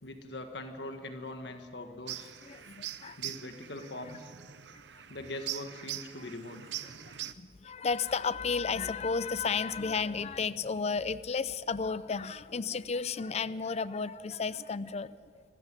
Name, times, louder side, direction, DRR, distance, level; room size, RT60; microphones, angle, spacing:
voice 1, 0.0-2.3 3.2-4.3 5.1-6.7, left 1 dB, 70° left, 6 dB, 1.6 m, -42 dB
sound 1, 2.1-7.3, right 12 dB, 75° right, 0.7 m, -42 dB
voice 2, 2.5-3.2 7.0-15.4, left 5 dB, 35° left, 16 dB, 0.5 m, -33 dB
25.5 x 15.0 x 9.1 m, 2.2 s
head